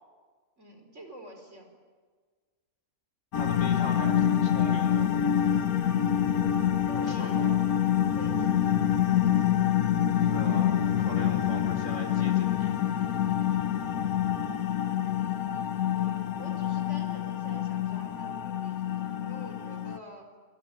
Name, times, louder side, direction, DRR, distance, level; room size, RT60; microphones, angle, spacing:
voice 1, 0.6-1.7 5.6-5.9 6.9-7.5 8.1-9.5 14.3-14.6 15.9-20.3, equal, 50° right, 4 dB, 5.0 m, -48 dB
sound 1, 3.3-20.0, left 10 dB, 70° left, 1.4 m, -26 dB
voice 2, 3.4-5.1 7.0-7.6 10.3-12.7, left 1 dB, 55° left, 3 dB, 4.8 m, -41 dB
24.5 x 23.5 x 9.2 m, 1.5 s
omnidirectional pair, 1.6 m